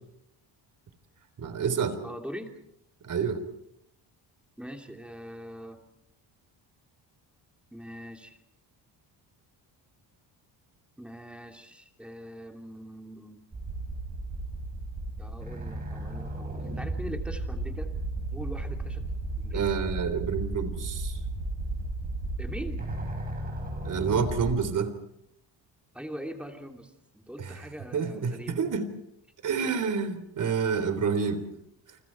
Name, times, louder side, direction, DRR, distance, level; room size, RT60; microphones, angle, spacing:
voice 1, 1.4-2.0 3.0-3.4 19.5-21.2 23.8-24.9 27.4-27.6 27.9-28.9 29.4-31.4, right 6 dB, 45° right, 10 dB, 3.7 m, -28 dB
voice 2, 2.0-2.5 4.6-5.8 7.7-8.4 11.0-13.4 15.2-17.9 18.3-19.1 19.4-19.6 22.4-22.8 25.9-28.6, equal, 5° right, 3 dB, 2.9 m, -42 dB
sound 1, 13.5-24.5, right 2 dB, 20° right, 6.0 m, -34 dB
30.0 x 29.5 x 4.7 m, 0.78 s
cardioid pair, 170°, 44 cm